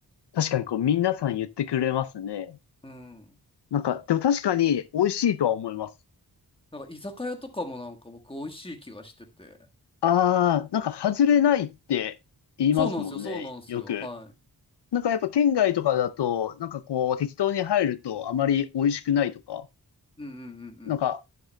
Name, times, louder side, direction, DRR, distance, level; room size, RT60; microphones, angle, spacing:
voice 1, 0.3-2.5 3.7-5.9 10.0-12.1 12.6-14.1 14.9-19.6 20.8-21.2, left 9 dB, 85° left, 0.6 m, -25 dB
voice 2, 2.8-3.2 6.7-9.1 9.4-9.6 12.8-14.3 20.2-20.9, left 1 dB, 15° left, 1.5 m, -37 dB
11.5 x 9.1 x 2.2 m
wide cardioid pair, 125°, 40 cm